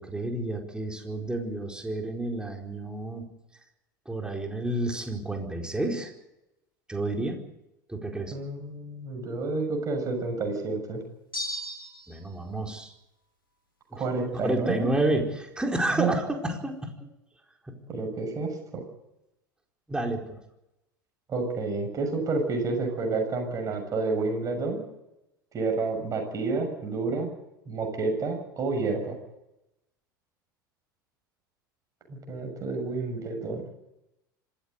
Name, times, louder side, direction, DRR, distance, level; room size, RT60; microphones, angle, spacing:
voice 1, 0.0-3.2 4.1-6.1 6.9-7.4 7.9-8.3 12.1-12.9 13.9-14.0 14.4-16.9 17.7-17.8 19.9-20.4, right 1 dB, 10° right, 2 dB, 4.6 m, -30 dB
voice 2, 8.3-11.0 13.9-14.9 15.9-16.1 17.9-18.8 21.3-24.8 25.5-27.3 27.7-29.2 32.1-33.6, right 3 dB, 30° right, 3 dB, 6.9 m, -29 dB
sound 1, 11.3-12.3, equal, 85° left, 3.2 m, -35 dB
25.5 x 14.5 x 8.2 m, 0.89 s
figure-of-eight pair, 75°, 11 cm